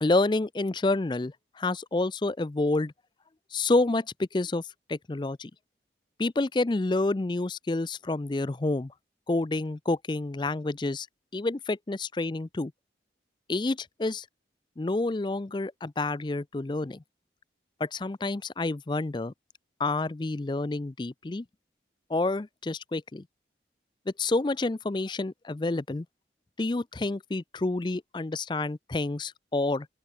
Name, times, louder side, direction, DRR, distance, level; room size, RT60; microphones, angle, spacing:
voice 1, 0.0-2.9 3.5-4.6 4.9-5.5 6.2-8.9 9.3-11.1 11.3-12.7 13.5-14.3 14.8-17.0 17.8-19.3 19.8-21.4 22.1-23.2 24.1-26.1 26.6-29.9, left 2 dB, 25° left, 0.4 m, -28 dB
open air
head